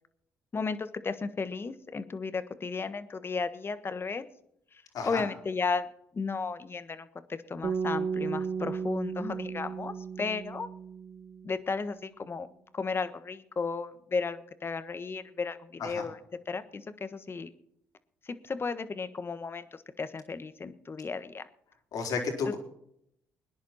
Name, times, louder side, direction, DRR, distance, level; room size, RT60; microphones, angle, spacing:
voice 1, 0.5-4.2 4.7-5.9 6.1-10.7 11.4-12.5 12.7-16.2 16.5-17.5 18.2-21.4 22.5-22.6, left 4 dB, 35° left, 12 dB, 1.4 m, -34 dB
voice 2, 4.9-5.3 15.8-16.0 21.9-22.6, left 5 dB, 70° left, 2 dB, 4.0 m, -32 dB
sound 1, 7.6-11.9, right 6 dB, 50° right, 1.5 m, -35 dB
20.5 x 10.5 x 4.3 m, 0.73 s
supercardioid pair, 60°, 7 cm